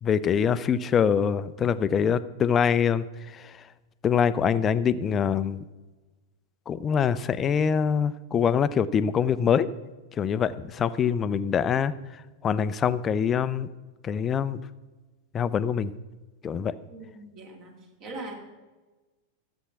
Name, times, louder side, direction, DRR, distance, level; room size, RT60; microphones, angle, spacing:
voice 1, 0.0-3.6 4.0-5.6 6.7-9.7 10.2-11.9 12.4-13.7 14.0-14.6 15.3-15.9 16.4-16.7, left 7 dB, 25° left, 15 dB, 0.5 m, -24 dB
voice 2, 16.9-18.3, right 2 dB, 40° right, 1 dB, 2.6 m, -41 dB
13.0 x 7.9 x 6.0 m, 1.2 s
figure-of-eight pair, 90°, 0 cm